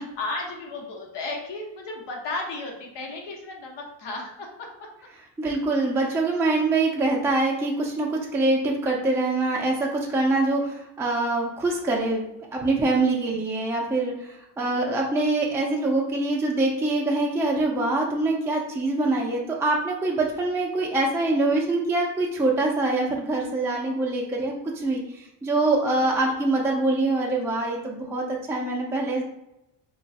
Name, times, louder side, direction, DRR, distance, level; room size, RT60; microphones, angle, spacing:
voice 1, 0.0-4.7 5.9-6.2 13.5-13.6 14.6-14.7 26.2-26.3, left 2 dB, 70° left, 1 dB, 0.9 m, -35 dB
voice 2, 5.4-12.2 12.5-29.2, right 2 dB, 5° right, -2 dB, 0.4 m, -24 dB
3.0 x 2.2 x 2.7 m, 0.87 s
cardioid pair, 100°, 43 cm